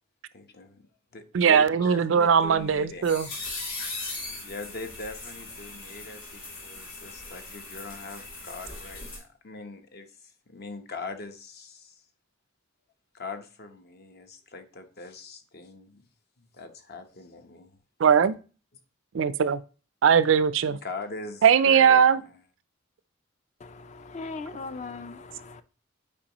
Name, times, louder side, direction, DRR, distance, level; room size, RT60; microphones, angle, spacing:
voice 1, 0.3-0.8 1.1-3.1 4.4-12.0 13.1-16.1 16.4-17.8 20.7-22.4, left 3 dB, 55° left, 0.9 m, -41 dB
voice 2, 1.3-3.3 18.0-18.4 19.1-19.6 20.0-20.8 21.4-22.2, right 7 dB, 70° right, 0.4 m, -20 dB
sound 1, 2.4-9.2, left 3 dB, 85° left, 2.8 m, -39 dB
voice 3, 23.6-25.6, left 3 dB, 35° left, 0.4 m, -39 dB
8.6 x 4.6 x 3.0 m
head